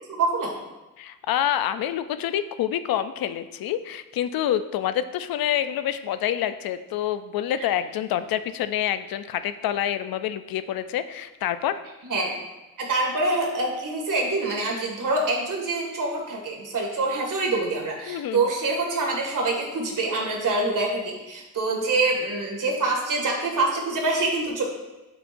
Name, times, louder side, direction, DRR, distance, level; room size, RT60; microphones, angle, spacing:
voice 1, 0.1-0.5 7.6-7.7 12.0-12.3 12.8-24.6, right 2 dB, 65° right, -1 dB, 2.1 m, -25 dB
voice 2, 1.0-11.8 18.1-18.4, left 11 dB, 85° left, 12 dB, 0.5 m, -27 dB
7.9 x 7.5 x 2.6 m, 1.1 s
cardioid pair, 80°, 35 cm